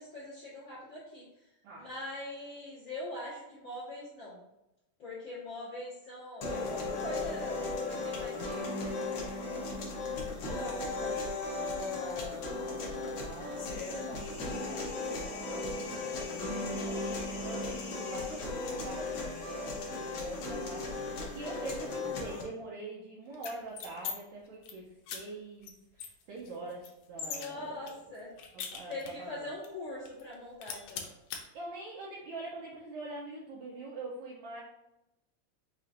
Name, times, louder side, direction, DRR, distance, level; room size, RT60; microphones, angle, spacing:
voice 1, 0.0-1.4 1.7-4.4 5.0-10.6 16.6-16.8 27.2-28.3 28.9-31.1, left 1 dB, 50° left, -10 dB, 1.7 m, -43 dB
sound 1, 6.4-22.4, left 3 dB, 65° left, 1.5 m, -36 dB
voice 2, 10.5-28.1 28.5-29.5 31.5-34.6, right 2 dB, 70° right, -5 dB, 1.9 m, -44 dB
sound 2, 23.3-24.1 24.5-24.7 25.1-25.2 25.6-25.7 26.0-27.5 27.9-29.3 29.6-29.7 30.1-30.3 30.6-31.4, left 7 dB, 85° left, 2.1 m, -40 dB
5.7 x 3.1 x 2.6 m, 0.91 s
omnidirectional pair, 3.7 m